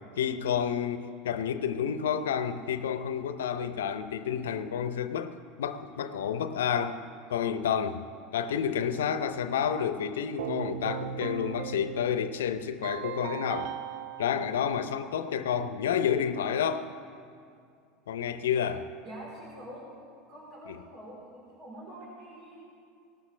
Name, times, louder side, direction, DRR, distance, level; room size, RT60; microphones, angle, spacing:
voice 1, 0.2-7.0 7.3-8.0 8.3-13.7 14.2-16.9 18.1-18.9 20.7-20.8, left 8 dB, 85° left, 0.6 m, -30 dB
Keyboard (musical), 10.4-15.4, right 8 dB, 70° right, 0.4 m, -38 dB
voice 2, 19.0-19.9 20.3-22.6, right 1 dB, 55° right, 3.7 m, -45 dB
18.0 x 12.5 x 3.3 m
hypercardioid pair, 90°, 0 cm